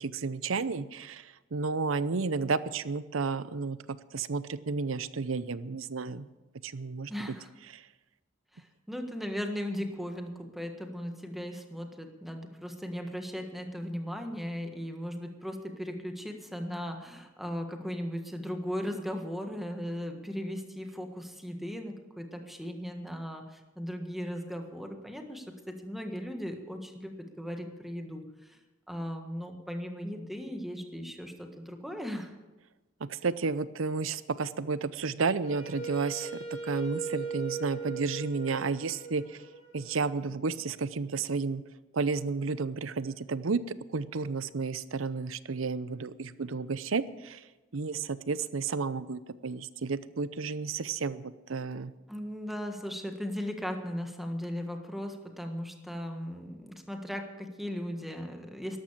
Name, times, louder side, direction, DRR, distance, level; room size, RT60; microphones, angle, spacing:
voice 1, 0.0-3.8 4.1-6.3 6.6-7.1 7.7-7.8 33.1-36.3 36.6-39.4 39.7-41.6 41.9-43.6 43.9-47.4 47.7-51.9, right 4 dB, 85° right, 16 dB, 0.7 m, -32 dB
voice 2, 7.1-7.5 8.5-28.6 28.9-32.3 52.1-58.8, equal, ahead, 4 dB, 1.6 m, -37 dB
Wind instrument woodwind instrument, 35.4-40.4, right 4 dB, 40° left, 4.0 m, -39 dB
13.5 x 11.5 x 7.4 m, 1.1 s
head